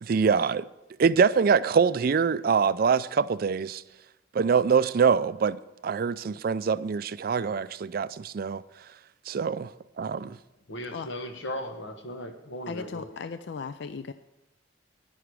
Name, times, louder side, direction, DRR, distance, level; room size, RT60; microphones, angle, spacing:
voice 1, 0.0-0.6 1.0-3.8 4.3-8.6 9.3-9.7 10.0-10.4, right 6 dB, 50° right, 0.4 m, -24 dB
voice 2, 10.7-13.3, left 1 dB, 90° left, 1.4 m, -37 dB
voice 3, 12.7-14.1, left 5 dB, 60° left, 0.4 m, -36 dB
11.0 x 10.5 x 4.8 m
head